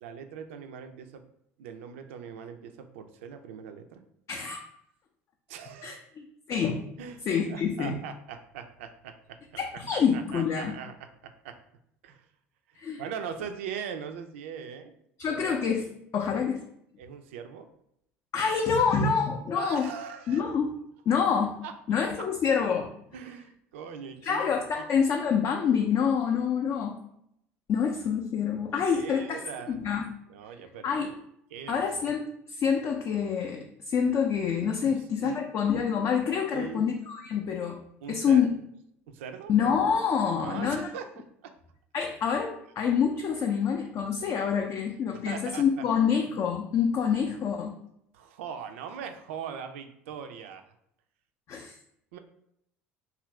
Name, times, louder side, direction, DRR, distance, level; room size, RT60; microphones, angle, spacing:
voice 1, 0.0-1.2 1.6-4.0 5.5-6.0 7.0-7.2 7.5-9.4 9.9-11.6 12.0-12.3 13.0-15.0 15.3-15.6 16.2-16.4 17.0-17.7 19.5-20.4 21.6-21.7 22.2-22.3 23.1-24.5 24.8-24.9 28.7-29.8 30.3-31.1 31.5-32.1 34.8-35.4 36.5-36.9 38.0-38.5 39.1-39.5 40.4-41.5 43.4-43.5 45.1-45.9 48.1-50.7 52.1-52.2, right 7 dB, 75° right, 7 dB, 0.3 m, -41 dB
voice 2, 5.8-6.8 7.3-8.0 9.6-10.7 12.8-13.0 15.2-15.9 16.1-16.6 18.3-19.9 20.3-20.8 21.1-21.6 21.9-22.9 24.2-27.0 27.7-29.4 29.7-30.0 30.8-31.1 31.7-37.8 38.1-38.5 39.5-40.9 41.9-47.7 51.5-51.8, left 6 dB, 45° left, 2 dB, 0.4 m, -27 dB
2.7 x 2.4 x 3.1 m, 0.75 s
hypercardioid pair, 70°, 7 cm